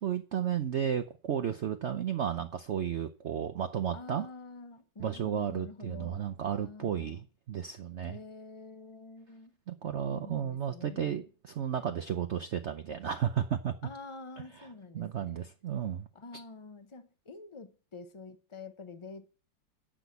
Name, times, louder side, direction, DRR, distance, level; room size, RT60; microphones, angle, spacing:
voice 1, 0.0-4.3 5.0-8.2 9.7-13.7 14.9-16.1, right 9 dB, 80° right, 0.6 m, -33 dB
voice 2, 3.9-6.3 6.6-7.2 8.0-9.6 10.1-11.3 13.8-15.5 16.1-19.3, left 3 dB, 50° left, 0.3 m, -47 dB
8.9 x 6.1 x 8.1 m
omnidirectional pair, 2.0 m